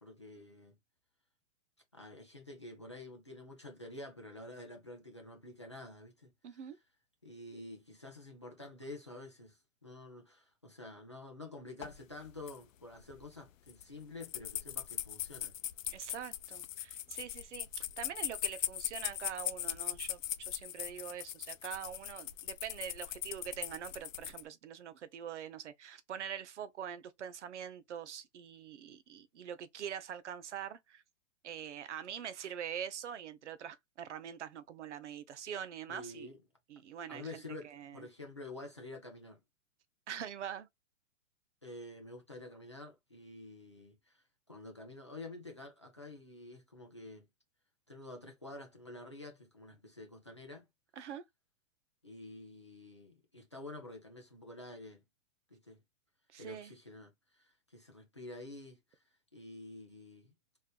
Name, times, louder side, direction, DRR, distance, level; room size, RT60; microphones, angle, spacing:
voice 1, 0.0-0.8 1.9-6.7 7.2-15.6 35.9-36.4 37.1-39.4 41.6-47.3 47.9-50.7 52.0-55.0 55.5-55.8 56.4-59.0 59.3-60.3, left 2 dB, 25° left, 0.3 m, -49 dB
voice 2, 6.4-6.8 15.9-31.0 31.4-36.3 36.7-38.1 40.1-40.7 51.0-51.2 56.3-56.7, right 8 dB, 60° right, 0.7 m, -44 dB
sound 1, 11.8-12.0 12.2-12.6 13.0-13.3 13.7-13.8 14.2-24.4, left 12 dB, 75° left, 0.6 m, -40 dB
3.7 x 2.5 x 2.2 m
hypercardioid pair, 170°, 40 cm